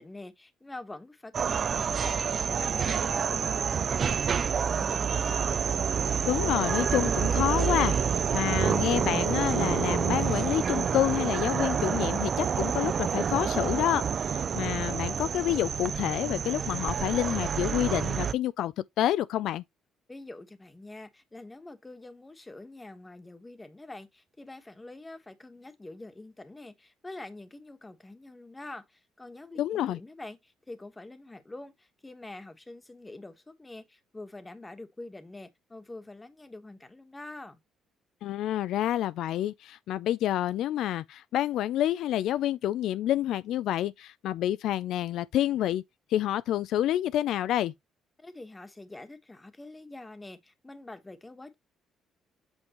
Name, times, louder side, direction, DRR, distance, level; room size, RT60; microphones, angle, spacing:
voice 1, 0.0-5.6 20.1-37.6 48.2-51.5, left 2 dB, 15° left, 1.2 m, -45 dB
sound 1, 1.3-18.3, right 7 dB, 45° right, 0.3 m, -28 dB
voice 2, 6.2-19.6 29.6-30.0 38.2-45.8 46.1-47.7, left 12 dB, 75° left, 0.3 m, -28 dB
8.0 x 5.3 x 3.0 m
cardioid pair, 100°, 0 cm